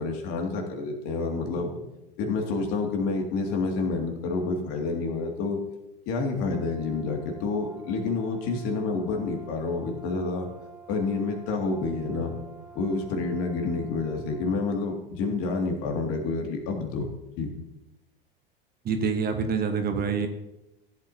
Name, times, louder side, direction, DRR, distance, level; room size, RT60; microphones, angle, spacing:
voice 1, 0.0-1.7 2.2-5.6 6.1-10.5 10.9-12.4 12.7-17.1 17.4-17.5, left 3 dB, 50° left, 2 dB, 2.3 m, -28 dB
Brass instrument, 6.3-14.8, right 4 dB, 5° right, 1.0 m, -48 dB
voice 2, 18.8-20.3, right 5 dB, 30° right, 6 dB, 1.2 m, -26 dB
15.0 x 8.5 x 2.8 m, 0.95 s
hypercardioid pair, 90°, 29 cm